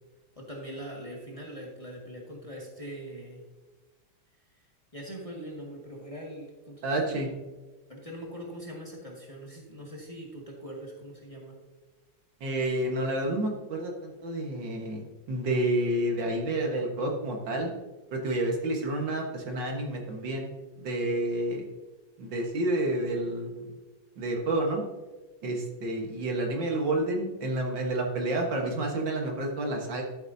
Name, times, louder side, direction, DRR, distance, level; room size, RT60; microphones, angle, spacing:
voice 1, 0.3-3.4 4.9-7.3 7.9-11.5, equal, 15° left, -3 dB, 1.7 m, -42 dB
voice 2, 6.8-7.3 12.4-17.7 18.1-20.5 20.8-21.7 22.2-23.6 24.2-24.8 25.4-30.0, right 1 dB, 65° right, 1 dB, 2.0 m, -29 dB
12.0 x 8.2 x 2.7 m, 1.2 s
omnidirectional pair, 2.2 m